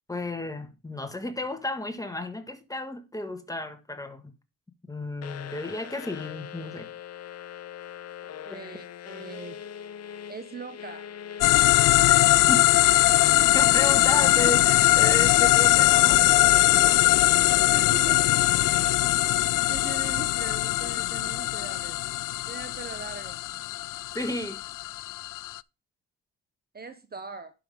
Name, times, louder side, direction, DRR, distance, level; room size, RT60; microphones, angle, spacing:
voice 1, 0.1-4.3 4.9-6.9 12.1-12.6 13.5-16.2 24.1-24.6, left 1 dB, 10° left, 1.7 m, -33 dB
sound 1, 5.2-19.0, left 9 dB, 50° left, 0.8 m, -42 dB
voice 2, 8.5-9.6 10.3-11.1 17.7-19.1 19.7-22.0 22.5-23.4 26.7-27.5, right 4 dB, 30° right, 1.1 m, -41 dB
sound 2, 11.4-25.6, left 17 dB, 70° left, 0.5 m, -21 dB
11.5 x 5.9 x 3.7 m
cardioid pair, 105°, 33 cm